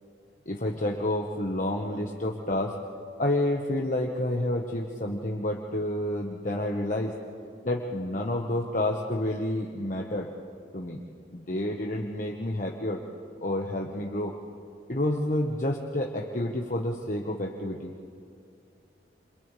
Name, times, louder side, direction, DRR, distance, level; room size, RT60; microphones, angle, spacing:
voice 1, 0.4-2.8 3.2-7.1 7.6-10.3 10.7-11.0 11.3-13.0 13.4-14.3 14.9-17.9, left 1 dB, 45° left, 0 dB, 1.4 m, -29 dB
29.5 x 27.0 x 3.4 m, 2.4 s
head